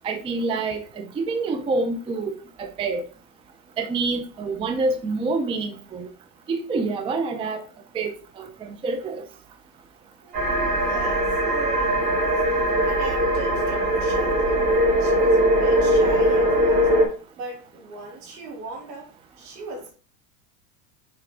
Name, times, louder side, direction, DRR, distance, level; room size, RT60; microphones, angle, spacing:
voice 1, 0.0-2.3 2.6-3.0 3.8-6.1 6.5-7.6 7.9-9.2, right 3 dB, 10° right, 7 dB, 0.4 m, -27 dB
voice 2, 10.2-14.6 15.0-16.9 17.4-19.1 19.4-19.9, right 2 dB, 75° right, 0 dB, 3.1 m, -38 dB
sound 1, 10.3-17.1, right 1 dB, 45° right, 3.0 m, -20 dB
6.1 x 4.5 x 3.4 m, 0.38 s
supercardioid pair, 125°, 47 cm